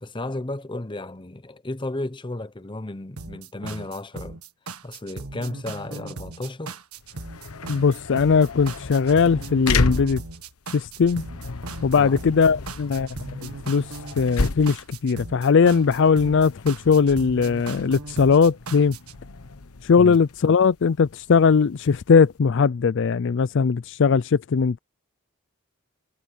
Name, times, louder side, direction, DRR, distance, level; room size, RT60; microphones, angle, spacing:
voice 1, 0.0-4.4 4.8-6.8 11.9-12.2 20.0-20.2, left 2 dB, 20° left, 0.7 m, -33 dB
sound 1, 3.2-19.2, right 3 dB, 80° right, 1.6 m, -38 dB
sound 2, 7.0-22.4, left 3 dB, 80° left, 1.1 m, -32 dB
voice 2, 7.7-10.2 10.7-11.2 11.8-13.1 13.4-13.9 14.2-19.0 19.8-24.8, left 5 dB, 55° left, 0.4 m, -19 dB
head